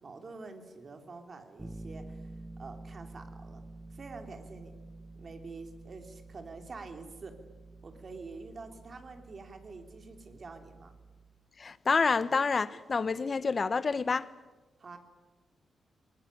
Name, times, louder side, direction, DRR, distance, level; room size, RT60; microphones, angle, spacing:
voice 1, 0.0-2.3 2.6-3.6 3.9-4.7 5.1-7.4 7.8-10.9 14.8-15.0, right 3 dB, 35° right, 3.2 m, -47 dB
Bass guitar, 1.6-11.5, right 2 dB, 10° right, 1.2 m, -49 dB
voice 2, 11.6-14.3, left 4 dB, 35° left, 0.9 m, -28 dB
21.0 x 20.0 x 10.0 m
wide cardioid pair, 145°, 0 cm